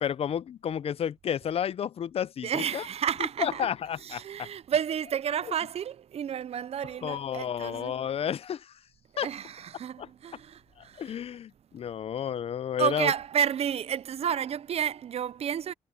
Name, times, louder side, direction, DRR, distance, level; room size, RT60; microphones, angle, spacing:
voice 1, 0.0-2.9 3.4-4.5 7.0-8.7 9.2-9.3 10.0-10.1 11.0-13.1, left 9 dB, 65° left, 0.4 m, -31 dB
voice 2, 2.4-3.7 4.0-7.9 9.2-10.6 12.8-15.7, right 8 dB, 70° right, 0.4 m, -31 dB
wide cardioid pair, 150°, 11 cm